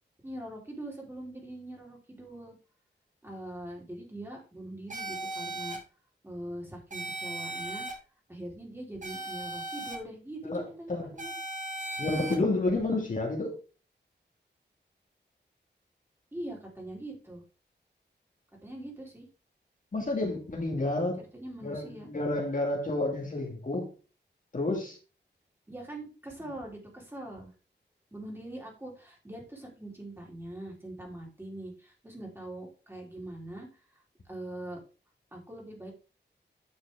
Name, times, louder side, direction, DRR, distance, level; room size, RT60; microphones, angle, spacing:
voice 1, 0.2-2.5 3.2-5.8 6.2-7.9 8.3-11.3 12.1-12.5 16.3-17.4 18.6-19.3 21.2-22.1 25.7-27.5 28.1-34.0 34.3-34.8 35.3-35.9, right 1 dB, 10° right, -2 dB, 3.7 m, -42 dB
sound 1, 4.9-5.8 6.9-7.9 9.0-10.0 11.2-12.4, right 2 dB, 45° right, 2.4 m, -37 dB
voice 2, 10.4-11.1 12.0-13.6 19.9-21.2 21.6-23.9 24.5-25.0, left 2 dB, 45° left, 0 dB, 2.5 m, -30 dB
9.6 x 5.9 x 3.7 m, 0.34 s
wide cardioid pair, 100°, 19 cm